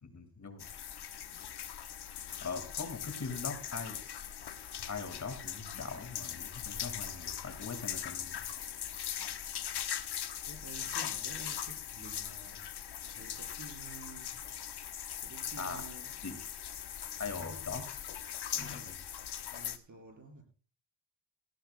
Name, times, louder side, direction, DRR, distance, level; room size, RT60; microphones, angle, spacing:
voice 1, 0.0-0.7 2.4-4.0 4.8-8.4 15.6-15.9 16.2-16.4 17.2-18.0 18.5-18.9, left 4 dB, 45° left, 7 dB, 2.2 m, -41 dB
sound 1, 0.6-19.8, left 9 dB, 85° left, 1.0 m, -40 dB
voice 2, 9.3-9.7 10.4-12.6 13.1-14.3 15.2-16.1 18.6-19.0 19.5-20.4, right 3 dB, 50° right, 3 dB, 5.0 m, -51 dB
18.5 x 16.0 x 2.2 m, 0.37 s
wide cardioid pair, 140°, 39 cm